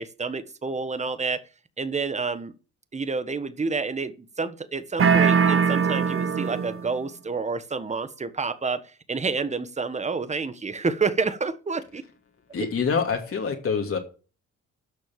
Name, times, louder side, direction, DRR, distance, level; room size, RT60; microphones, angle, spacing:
voice 1, 0.0-1.4 1.8-2.5 2.9-4.1 4.4-12.0, right 4 dB, 25° right, 1.3 m, -29 dB
sound 1, 5.0-6.9, right 6 dB, 45° right, 1.2 m, -21 dB
voice 2, 12.5-14.0, left 5 dB, 45° left, 2.7 m, -26 dB
12.0 x 6.3 x 7.4 m
cardioid pair, 90°, 30 cm